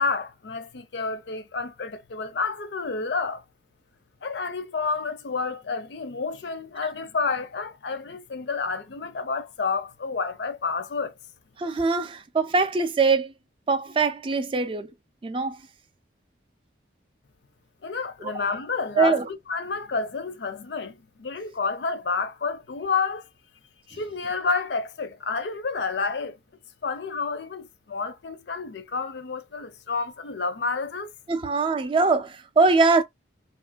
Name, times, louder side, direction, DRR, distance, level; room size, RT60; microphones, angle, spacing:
voice 1, 0.0-3.4 4.2-11.1 17.8-23.2 23.9-26.4 26.8-31.1, left 4 dB, 65° left, 0.5 m, -30 dB
voice 2, 11.6-13.3 13.7-14.9 15.2-15.6 19.0-19.2 31.3-33.0, right 4 dB, 25° right, 0.3 m, -22 dB
3.0 x 2.4 x 2.2 m
head